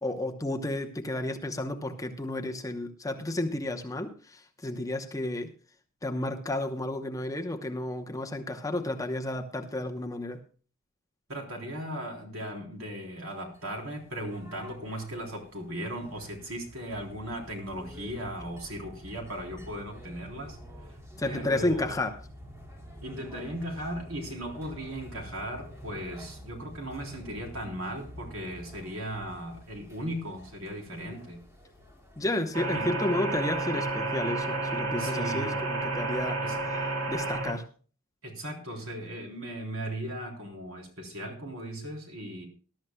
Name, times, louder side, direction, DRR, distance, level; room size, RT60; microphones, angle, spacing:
voice 1, 0.0-5.5 6.0-10.4 21.2-22.2 32.2-36.4 37.1-37.7, left 1 dB, 15° left, 4 dB, 0.8 m, -32 dB
voice 2, 11.3-20.6 21.2-22.0 23.0-31.4 32.7-32.9 35.0-35.6 36.4-36.6 38.2-42.5, right 1 dB, 70° right, 1 dB, 3.6 m, -37 dB
sound 1, 13.5-32.7, equal, 15° right, 2.2 m, -48 dB
sound 2, 32.5-37.5, right 2 dB, 85° right, 2.5 m, -31 dB
20.0 x 12.0 x 2.3 m, 0.38 s
head